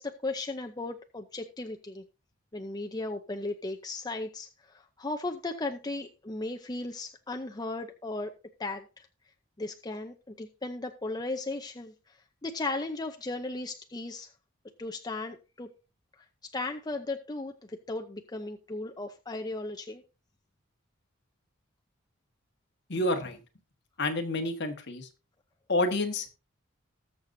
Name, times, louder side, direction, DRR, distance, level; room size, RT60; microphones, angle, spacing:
voice 1, 0.0-2.0 2.5-8.3 8.6-9.1 9.6-12.2 12.4-14.3 14.8-15.7 16.4-20.0, left 2 dB, 20° left, 4 dB, 0.6 m, -36 dB
voice 2, 22.9-23.4 24.0-25.1 25.7-26.3, left 2 dB, 55° left, 5 dB, 1.5 m, -29 dB
20.0 x 6.6 x 2.7 m, 0.30 s
head